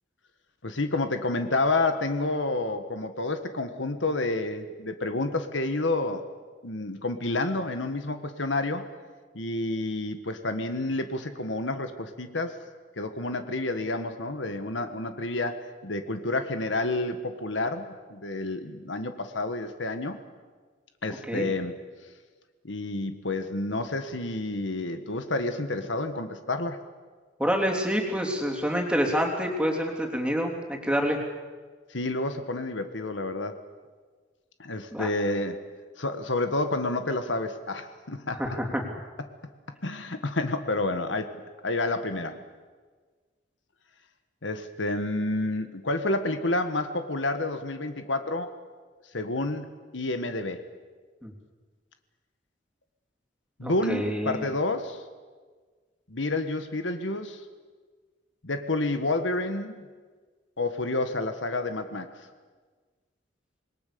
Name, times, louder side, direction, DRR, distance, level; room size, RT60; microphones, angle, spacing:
voice 1, 0.6-6.2 6.6-8.9 9.3-12.5 13.0-20.2 21.0-21.8 22.6-26.8 31.9-33.6 34.6-35.6 36.0-38.6 39.8-41.3 41.6-42.4 44.4-48.6 49.1-49.7 49.9-50.6 53.6-55.0 56.1-57.4 58.4-59.8 60.6-62.1, left 2 dB, 80° left, 8 dB, 1.6 m, -29 dB
voice 2, 27.4-31.2 34.9-35.1 38.4-38.8 51.2-51.3 53.6-54.5, equal, 5° right, 1 dB, 3.4 m, -27 dB
26.5 x 21.0 x 7.0 m, 1.5 s
head